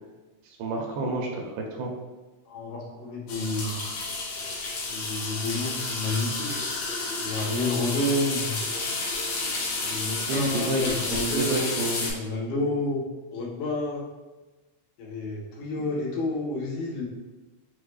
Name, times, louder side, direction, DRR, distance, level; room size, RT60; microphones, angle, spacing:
voice 1, 0.5-1.9 10.3-12.0 15.7-15.9, right 2 dB, 85° right, 0 dB, 2.3 m, -30 dB
voice 2, 2.5-3.8 4.9-6.5 7.2-8.6 9.8-11.7 12.0-13.0 13.3-14.0 15.0-17.1, left 1 dB, 90° left, -4 dB, 2.7 m, -29 dB
sound 1, 3.3-12.1, left 3 dB, 70° left, 2.0 m, -31 dB
6.3 x 2.2 x 3.2 m, 1.2 s
omnidirectional pair, 3.8 m